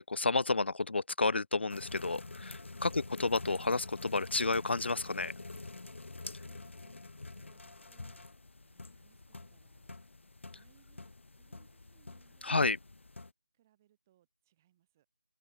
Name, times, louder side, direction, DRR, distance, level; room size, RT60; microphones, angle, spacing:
voice 1, 0.0-5.3 12.4-12.8, left 3 dB, 65° left, 0.7 m, -31 dB
sound 1, 1.7-13.3, left 3 dB, 90° left, 0.9 m, -47 dB
voice 2, 5.9-8.3 8.6-9.9 10.5-12.5 13.5-15.1, right 12 dB, 15° right, 7.5 m, -70 dB
open air
figure-of-eight pair, 175°, 6 cm